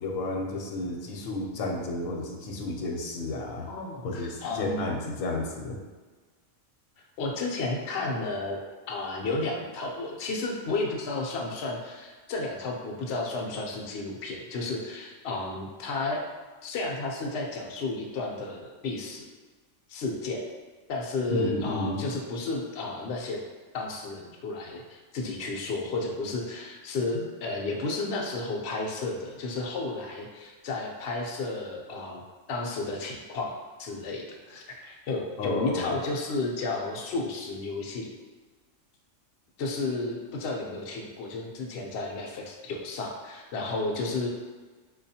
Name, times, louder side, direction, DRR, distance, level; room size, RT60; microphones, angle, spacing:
voice 1, 0.0-3.7 4.0-5.8 21.3-22.0 27.1-27.2 35.4-35.9, left 2 dB, 85° left, 1 dB, 1.0 m, -32 dB
voice 2, 3.7-4.9 7.2-8.6 8.9-16.2 16.6-19.3 19.9-20.4 20.9-23.4 23.7-32.2 32.5-33.5 33.8-38.1 39.6-44.3, left 3 dB, 65° left, 0 dB, 0.8 m, -32 dB
4.9 x 2.3 x 2.7 m, 1.3 s
omnidirectional pair, 1.3 m